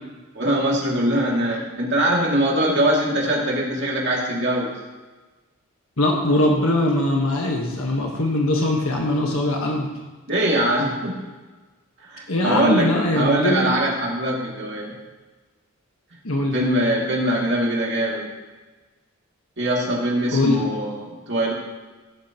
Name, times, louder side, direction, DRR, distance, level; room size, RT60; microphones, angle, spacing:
voice 1, 0.3-4.8 10.3-11.2 12.1-14.9 16.5-18.3 19.6-21.5, right 1 dB, 50° right, -3 dB, 2.6 m, -22 dB
voice 2, 6.0-9.9 12.3-13.8 16.2-16.6 20.3-20.6, left 1 dB, 70° left, 0 dB, 1.4 m, -21 dB
16.0 x 8.5 x 3.0 m, 1.3 s
head